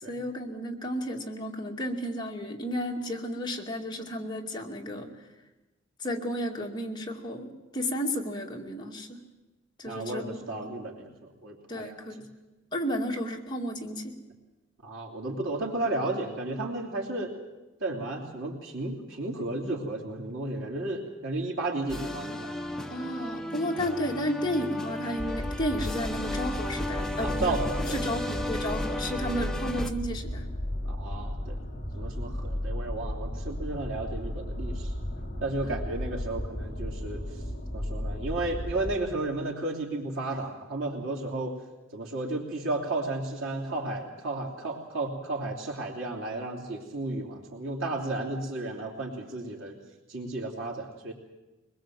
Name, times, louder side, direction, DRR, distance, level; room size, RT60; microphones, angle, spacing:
voice 1, 0.1-5.1 6.0-9.2 9.8-10.7 11.7-12.3 12.7-14.1 22.9-27.6 27.9-30.4 35.6-35.8, equal, 20° left, 0 dB, 2.3 m, -33 dB
voice 2, 9.8-11.1 11.4-12.1 14.8-17.3 17.8-22.6 27.2-28.0 30.9-31.6 31.9-34.9 35.4-37.2 37.7-41.6 41.9-49.8 50.1-51.1, right 2 dB, 85° right, -2 dB, 3.2 m, -33 dB
sound 1, 21.9-29.9, left 1 dB, 5° left, 1.0 m, -34 dB
sound 2, 25.2-39.0, left 1 dB, 40° left, 4.5 m, -34 dB
22.5 x 21.0 x 7.7 m, 1.1 s
head